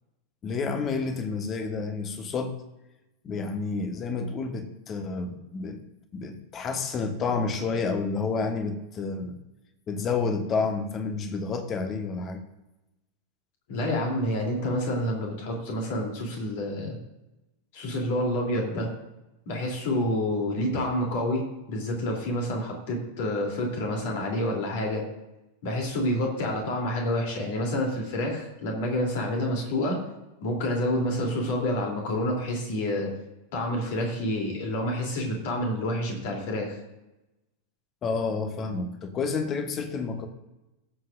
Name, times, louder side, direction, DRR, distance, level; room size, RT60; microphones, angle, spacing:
voice 1, 0.4-2.5 3.2-5.8 6.1-9.3 9.9-12.4 38.0-40.3, left 4 dB, 30° left, 7 dB, 1.4 m, -30 dB
voice 2, 13.7-17.0 17.7-18.9 19.5-25.0 25.6-30.0 30.4-33.1 33.5-36.8, left 1 dB, 50° left, 0 dB, 3.1 m, -28 dB
19.0 x 7.7 x 2.6 m, 0.97 s
figure-of-eight pair, 90°, 0 cm